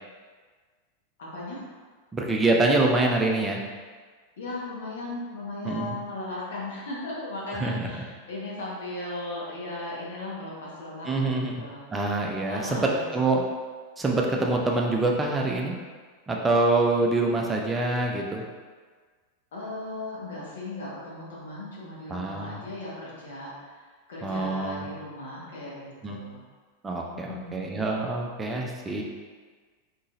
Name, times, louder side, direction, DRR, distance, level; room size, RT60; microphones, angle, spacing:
voice 1, 1.2-1.6 4.4-11.8 12.5-13.2 19.5-26.4 27.1-27.8, left 2 dB, 60° left, -6 dB, 1.3 m, -37 dB
voice 2, 2.1-3.6 5.6-6.0 7.6-7.9 11.1-11.6 11.9-12.8 13.1-13.4 14.0-15.7 16.3-18.4 22.1-22.6 24.2-24.8 26.0-26.2 26.8-29.0, right 2 dB, 15° right, 0 dB, 0.6 m, -25 dB
4.1 x 3.8 x 2.6 m, 1.5 s
figure-of-eight pair, 90°, 0 cm